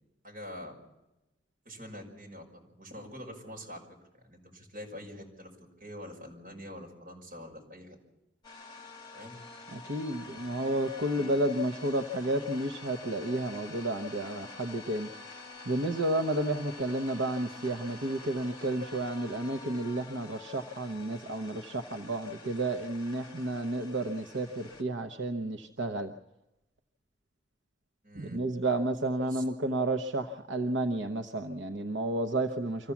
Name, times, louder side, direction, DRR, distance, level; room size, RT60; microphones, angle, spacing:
voice 1, 0.2-0.7 1.6-3.8 4.2-5.5 5.8-8.0 9.1-9.3 10.3-10.4 28.0-28.4 29.2-29.4, equal, 45° right, 0 dB, 5.8 m, -45 dB
sound 1, 8.4-24.8, left 3 dB, 25° left, 1.9 m, -48 dB
voice 2, 9.7-15.4 15.6-26.1 28.1-32.9, right 1 dB, 75° right, 5 dB, 0.9 m, -31 dB
25.0 x 15.0 x 7.2 m, 0.96 s
head